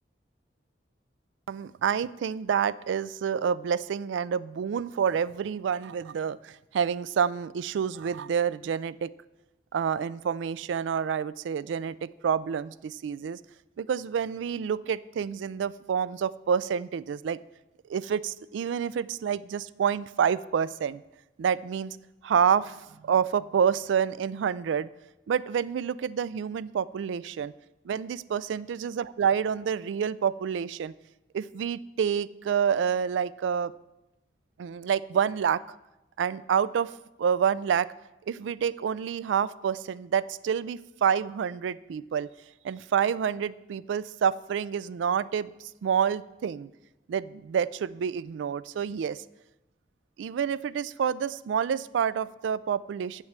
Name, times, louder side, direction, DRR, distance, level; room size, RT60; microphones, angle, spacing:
voice 1, 1.5-9.1 9.7-13.4 13.8-17.4 17.9-21.0 21.4-22.0 22.2-22.8 23.0-24.9 25.3-27.5 27.9-30.9 31.3-33.7 34.6-35.6 36.2-36.9 37.2-37.9 38.3-42.3 42.6-45.5 45.8-46.7 47.1-49.2 50.2-53.2, right 7 dB, 85° right, 19 dB, 0.3 m, -28 dB
7.7 x 6.3 x 7.3 m, 0.97 s
head